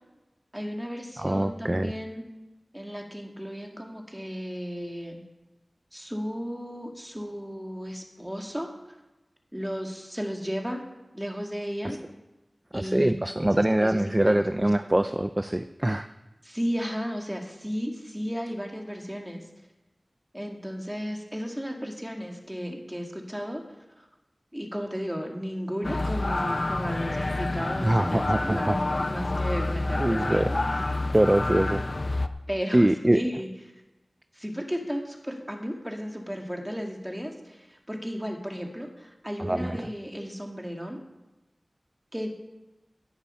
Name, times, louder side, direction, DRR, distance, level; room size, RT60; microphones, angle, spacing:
voice 1, 0.5-2.2 2.7-5.2 5.9-8.7 9.5-10.8 11.1-12.0 12.7-13.1 13.5-15.0 16.4-19.5 20.3-23.6 24.0-24.1 24.5-30.6 32.5-33.5 34.3-41.0 42.1-42.3, equal, 5° right, 2 dB, 2.3 m, -34 dB
voice 2, 1.2-1.9 12.7-16.1 27.8-28.8 30.0-30.5 31.1-31.8 32.7-33.2 39.4-39.8, right 1 dB, 25° right, 10 dB, 0.5 m, -23 dB
sound 1, 25.8-32.3, left 2 dB, 55° left, 0.7 m, -28 dB
17.0 x 7.1 x 5.7 m, 1.0 s
wide cardioid pair, 45°, 0 cm